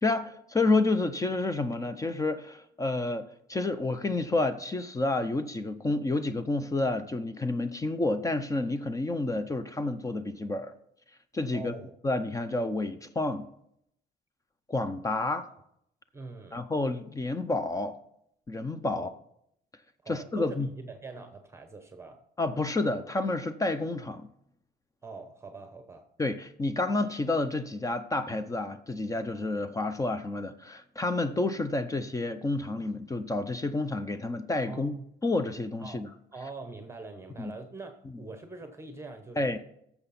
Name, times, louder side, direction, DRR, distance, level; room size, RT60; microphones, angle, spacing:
voice 1, 0.0-10.7 11.3-11.7 12.0-13.5 14.7-15.5 16.5-17.9 18.5-19.1 20.1-20.7 22.4-24.3 26.2-34.9 35.2-36.1 37.4-37.5 39.4-39.6, left 2 dB, 20° left, 11 dB, 0.6 m, -29 dB
voice 2, 11.5-11.9 16.1-16.6 18.9-19.1 20.0-22.2 25.0-26.1 34.6-35.0 35.8-36.0 36.3-39.6, right 3 dB, 15° right, 7 dB, 0.9 m, -43 dB
12.0 x 7.0 x 4.2 m, 0.73 s
cardioid pair, 110°, 17 cm